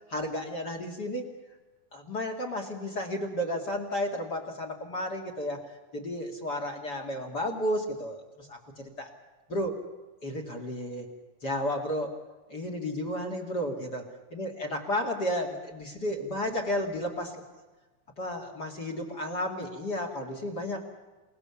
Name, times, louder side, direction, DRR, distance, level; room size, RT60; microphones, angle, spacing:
voice 1, 0.1-1.3 1.9-5.6 5.9-9.1 9.5-9.8 10.2-11.1 11.4-12.1 12.5-17.4 18.2-20.8, left 1 dB, 30° left, 6 dB, 2.4 m, -32 dB
28.0 x 19.0 x 7.1 m, 1.2 s
omnidirectional pair, 4.0 m